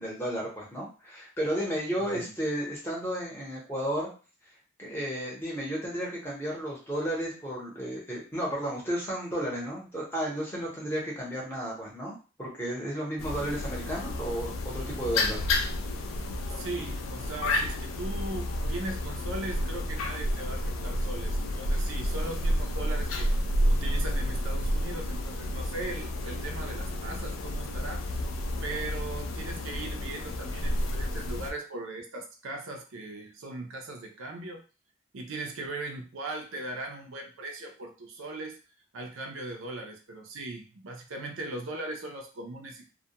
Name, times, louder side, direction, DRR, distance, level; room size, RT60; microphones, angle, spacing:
voice 1, 0.0-4.1 4.8-15.4, equal, 10° left, -4 dB, 0.8 m, -33 dB
voice 2, 2.0-2.3 16.6-28.2 28.6-34.6 35.1-38.6 38.9-42.9, right 2 dB, 70° right, 3 dB, 0.5 m, -39 dB
sound 1, 13.2-31.5, left 1 dB, 70° left, 0.4 m, -30 dB
2.2 x 2.1 x 2.8 m, 0.35 s
head